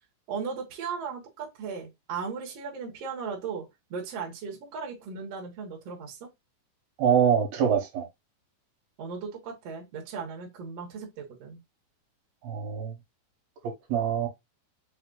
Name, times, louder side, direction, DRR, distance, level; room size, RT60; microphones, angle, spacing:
voice 1, 0.3-6.3 9.0-11.6, right 5 dB, 55° right, 1.9 m, -37 dB
voice 2, 7.0-8.1 12.4-12.9 13.9-14.3, right 8 dB, 75° right, 3.0 m, -24 dB
5.9 x 2.1 x 3.8 m
omnidirectional pair, 4.3 m